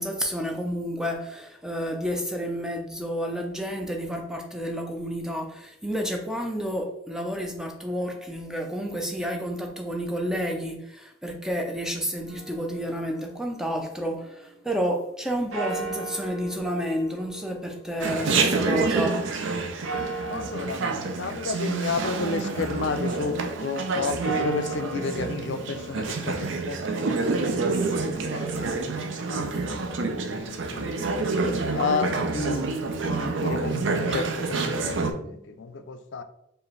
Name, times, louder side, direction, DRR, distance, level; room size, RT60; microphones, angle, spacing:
voice 1, 0.0-19.2, equal, 5° right, 2 dB, 0.5 m, -30 dB
sound 1, 12.3-14.4 15.5-18.9 19.8-22.8 24.0-28.0, right 4 dB, 90° right, 0.9 m, -38 dB
Chatter, 18.0-35.1, right 3 dB, 70° right, 0.5 m, -28 dB
voice 2, 20.2-23.3 23.6-30.9 31.7-32.7 33.1-36.2, left 4 dB, 65° left, 8 dB, 0.4 m, -32 dB
4.8 x 2.6 x 3.2 m, 0.80 s
head